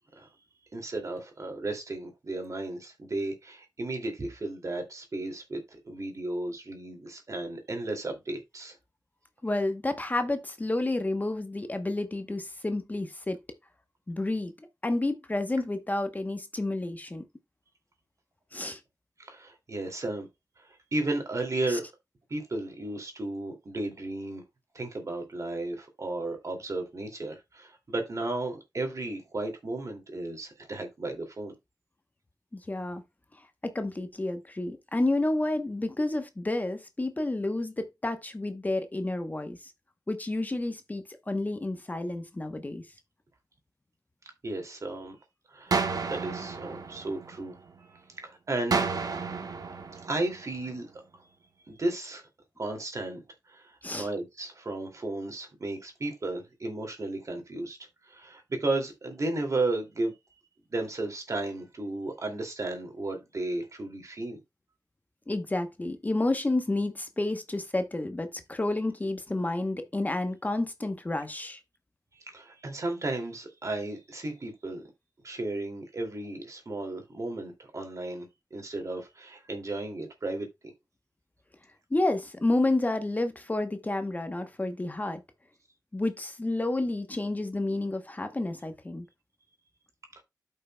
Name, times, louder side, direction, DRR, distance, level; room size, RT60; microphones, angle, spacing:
voice 1, 0.7-8.7 19.2-20.3 20.6-21.8 22.3-24.4 24.7-31.5 44.4-45.2 45.5-47.5 47.9-48.9 50.0-50.9 51.7-52.2 52.6-53.2 53.5-57.8 58.0-60.1 60.7-64.4 72.3-74.8 75.2-80.5 90.2-90.3, right 2 dB, 55° right, 2.4 m, -34 dB
voice 2, 9.4-13.4 14.1-14.5 14.8-17.2 18.5-18.8 21.7-21.8 32.5-33.0 33.6-39.7 40.1-42.8 53.8-54.1 65.3-71.6 81.9-85.2 85.9-89.1, left 2 dB, 25° left, 0.9 m, -30 dB
sound 1, 45.7-47.8 48.7-50.8, right 4 dB, 75° right, 1.1 m, -32 dB
13.0 x 5.5 x 2.2 m
wide cardioid pair, 100°, 7 cm